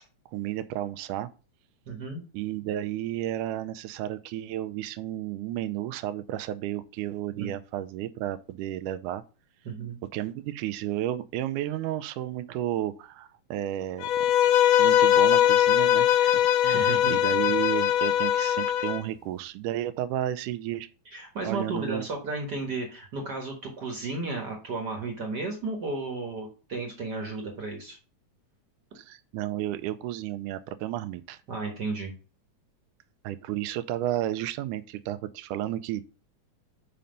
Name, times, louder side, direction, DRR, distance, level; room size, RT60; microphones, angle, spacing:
voice 1, 0.3-1.3 2.3-9.2 10.1-14.1 14.8-20.9 21.4-22.1 29.0-31.4 33.2-36.0, right 13 dB, 90° right, 2.1 m, -32 dB
voice 2, 1.9-2.2 7.4-7.5 9.6-10.0 16.7-17.2 21.1-28.0 31.5-32.1, right 3 dB, 50° right, 1.3 m, -33 dB
Bowed string instrument, 14.0-19.0, left 11 dB, 85° left, 2.2 m, -21 dB
5.7 x 5.2 x 5.2 m
omnidirectional pair, 3.5 m